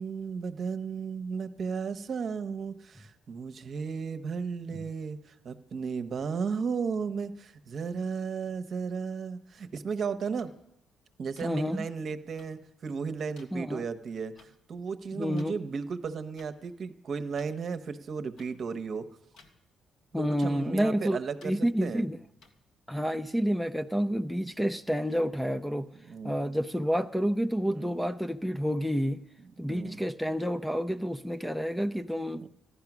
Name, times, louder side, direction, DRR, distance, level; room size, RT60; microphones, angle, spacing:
voice 1, 0.0-10.5 11.2-19.1 20.1-22.0 26.1-26.4 27.7-28.0 29.6-30.0 32.3-32.5, right 5 dB, 55° right, 0.9 m, -35 dB
sound 1, 10.4-10.5 11.4-11.5 12.4-12.5 13.4-13.5 14.4-14.5 15.4-15.5 16.4-16.5 17.4-17.5 18.4-18.5 19.4-19.5 20.4-20.5 21.4-21.5 22.4-22.5, left 4 dB, 75° left, 1.8 m, -55 dB
voice 2, 11.4-11.9 13.5-13.8 15.2-15.5 20.1-22.2 22.9-25.9 26.2-29.2 29.6-32.4, equal, ahead, 0.5 m, -29 dB
14.0 x 11.5 x 6.0 m
cardioid pair, 90°, 0 cm